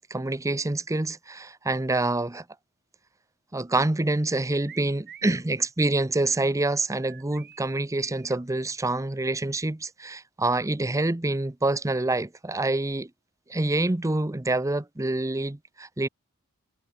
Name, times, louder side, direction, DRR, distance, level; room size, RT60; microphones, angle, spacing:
voice 1, 0.0-2.4 3.5-13.1 13.5-16.1, right 2 dB, 15° right, 0.7 m, -26 dB
sound 1, 4.7-5.4 7.0-8.4, right 9 dB, 50° right, 5.0 m, -48 dB
head